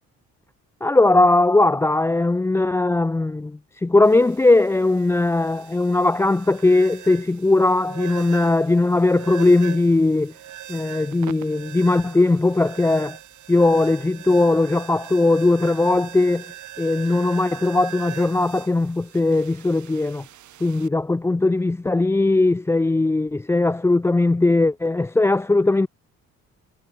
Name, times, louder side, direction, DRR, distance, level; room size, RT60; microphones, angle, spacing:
voice 1, 0.8-10.3 10.7-13.2 13.5-20.2 20.6-25.9, left 2 dB, 10° left, 0.4 m, -19 dB
sound 1, 4.0-20.9, right 12 dB, 75° right, 4.4 m, -41 dB
cardioid pair, 90°, 30 cm